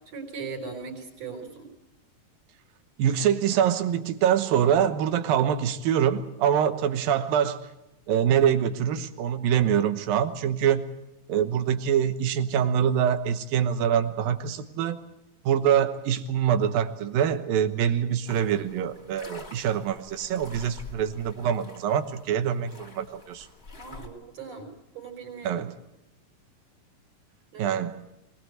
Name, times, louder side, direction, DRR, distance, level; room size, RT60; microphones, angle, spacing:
voice 1, 0.0-1.7 23.7-25.6 27.5-27.8, right 5 dB, 50° right, 3 dB, 5.3 m, -39 dB
voice 2, 3.0-7.6 8.1-10.8 11.3-15.0 15.5-23.5 25.4-25.8 27.6-28.0, right 9 dB, 90° right, 10 dB, 2.9 m, -24 dB
sound 1, 18.3-24.1, left 3 dB, 25° left, 1.8 m, -47 dB
22.0 x 19.5 x 8.0 m, 0.92 s
omnidirectional pair, 3.9 m